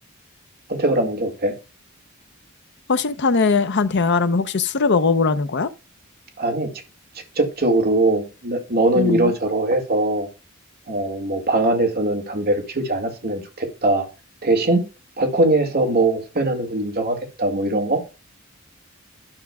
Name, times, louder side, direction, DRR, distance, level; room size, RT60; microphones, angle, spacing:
voice 1, 0.7-1.5 6.4-6.7 7.4-10.3 10.9-14.1 14.4-14.8 15.2-18.0, right 2 dB, 50° right, 2.0 m, -21 dB
voice 2, 2.9-5.7 8.9-9.3, left 4 dB, 55° left, 0.7 m, -20 dB
11.5 x 5.9 x 2.3 m
head